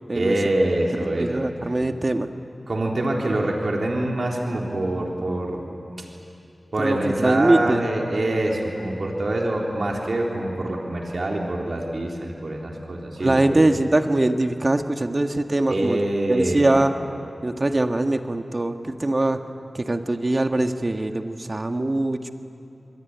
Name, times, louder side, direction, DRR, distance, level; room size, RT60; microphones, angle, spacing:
voice 1, 0.1-1.4 2.7-5.7 6.7-13.6 15.7-16.9, right 1 dB, 70° right, -1 dB, 3.7 m, -25 dB
voice 2, 1.2-2.3 6.8-7.8 13.2-16.0 16.3-16.9 17.4-19.4 19.7-22.3, right 2 dB, 45° right, 6 dB, 1.6 m, -22 dB
28.5 x 22.0 x 9.5 m, 2.7 s
cardioid pair, 45°, 0 cm